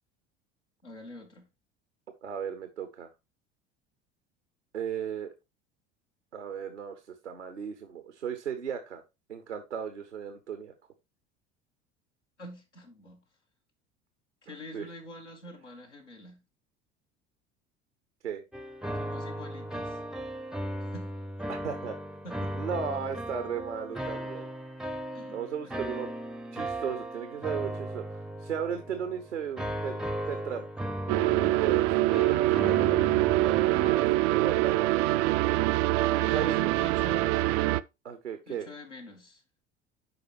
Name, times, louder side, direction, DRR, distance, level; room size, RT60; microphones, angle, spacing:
voice 1, 0.8-1.5 12.4-13.2 14.4-16.4 19.0-20.0 20.8-21.1 22.2-22.5 25.1-25.4 36.1-37.6 38.5-39.4, equal, 85° left, 2.0 m, -45 dB
voice 2, 2.2-3.1 4.7-5.3 6.3-9.0 9.3-10.7 14.5-14.9 18.2-18.4 21.5-22.0 22.5-24.5 25.3-26.1 26.5-30.0 30.3-30.7 31.2-36.8 38.0-38.7, right 7 dB, 85° right, 0.8 m, -36 dB
sound 1, 18.5-34.1, right 1 dB, ahead, 0.6 m, -37 dB
sound 2, 31.1-37.8, right 18 dB, 45° right, 0.4 m, -24 dB
12.0 x 4.9 x 3.0 m
figure-of-eight pair, 65°, 34 cm